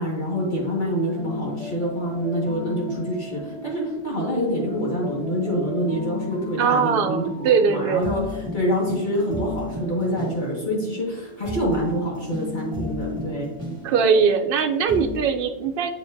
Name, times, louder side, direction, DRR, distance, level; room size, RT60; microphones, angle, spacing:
voice 1, 0.0-13.5, equal, 50° left, -5 dB, 1.7 m, -26 dB
sound 1, 0.8-15.2, left 1 dB, 30° right, 1.2 m, -35 dB
voice 2, 6.6-8.1 13.8-15.9, right 6 dB, 65° right, 6 dB, 0.8 m, -21 dB
7.4 x 4.9 x 2.6 m, 1.1 s
omnidirectional pair, 1.1 m